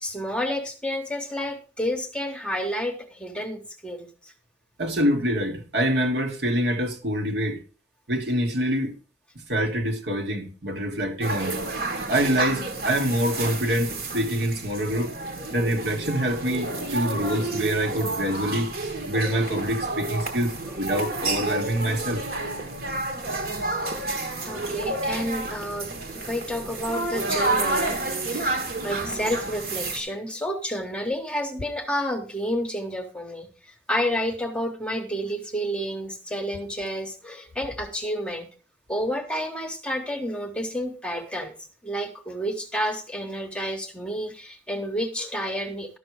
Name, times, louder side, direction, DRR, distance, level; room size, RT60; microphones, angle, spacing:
voice 1, 0.0-4.3 15.4-15.5 23.3-23.4 23.8-24.0 24.5-28.5 28.8-38.5 38.9-41.6 41.8-46.0, equal, 5° left, 1.0 m, -30 dB
voice 2, 4.8-7.6 8.1-8.9 9.5-11.6 12.1-15.1 15.5-18.7 19.1-22.2, equal, 70° right, 1.6 m, -25 dB
sound 1, 11.2-30.0, right 2 dB, 55° right, 1.5 m, -30 dB
12.0 x 6.0 x 4.7 m
head